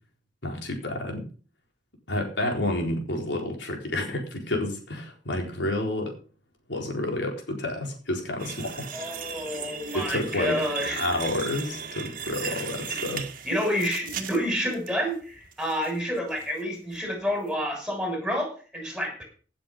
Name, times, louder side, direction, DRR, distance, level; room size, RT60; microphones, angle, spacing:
voice 1, 0.4-1.3 2.1-6.2 6.7-8.9 9.9-10.6 11.0-13.3, left 1 dB, 85° left, 2 dB, 4.2 m, -30 dB
sound 1, 8.4-14.9 15.3-15.9 16.3-16.5 16.9-17.0, right 6 dB, 50° right, 1.8 m, -36 dB
voice 2, 8.9-11.1 12.4-12.6 13.4-19.2, equal, 5° right, 2 dB, 6.5 m, -29 dB
17.0 x 7.6 x 5.6 m, 0.39 s
head